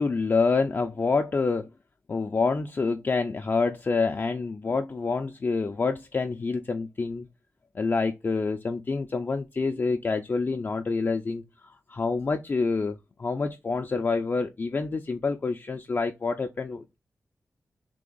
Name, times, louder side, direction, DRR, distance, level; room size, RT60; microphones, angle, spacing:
voice 1, 0.0-1.7 2.1-7.3 7.7-17.0, left 4 dB, 40° left, 0.4 m, -27 dB
3.4 x 2.9 x 3.8 m
wide cardioid pair, 95°, 5 cm